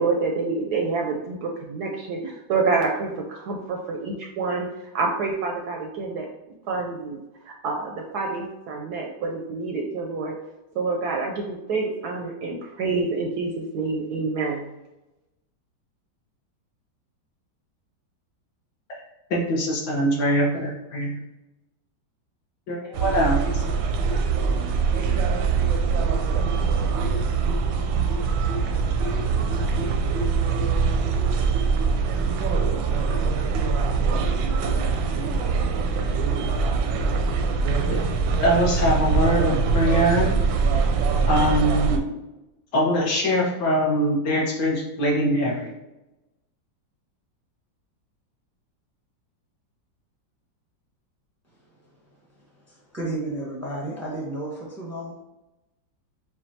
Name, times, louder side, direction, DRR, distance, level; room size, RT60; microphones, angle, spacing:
voice 1, 0.0-4.7 4.9-6.3 6.7-7.2 7.5-10.4 10.7-14.7, right 4 dB, 70° right, 1 dB, 1.0 m, -27 dB
voice 2, 19.3-21.1 22.7-23.6 38.4-40.3 41.3-42.1 42.7-45.7, equal, 65° left, -3 dB, 1.6 m, -22 dB
sound 1, 22.9-42.0, right 5 dB, 90° right, 1.4 m, -23 dB
voice 3, 52.7-55.2, right 2 dB, 10° right, -4 dB, 0.8 m, -32 dB
7.2 x 2.5 x 2.7 m, 0.99 s
omnidirectional pair, 2.0 m